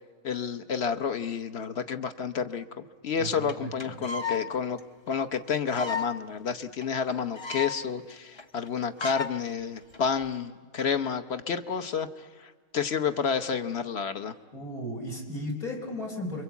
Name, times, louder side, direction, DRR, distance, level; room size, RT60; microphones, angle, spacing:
voice 1, 0.2-2.6 3.0-4.8 5.1-12.1 12.4-14.3, left 6 dB, 50° left, 8 dB, 1.2 m, -30 dB
voice 2, 3.2-4.1 14.5-16.4, equal, 80° left, -1 dB, 4.8 m, -36 dB
sound 1, 3.2-3.3 3.5-3.6 3.8-4.4 4.8-4.9 5.1-5.2 5.7-6.1 6.5-6.6 6.8-6.9 7.1-7.8 8.1-8.2 8.4-8.7 9.0-9.3 9.9-10.2, left 5 dB, 25° left, 0.7 m, -33 dB
30.0 x 23.0 x 8.3 m, 1.5 s
omnidirectional pair, 1.5 m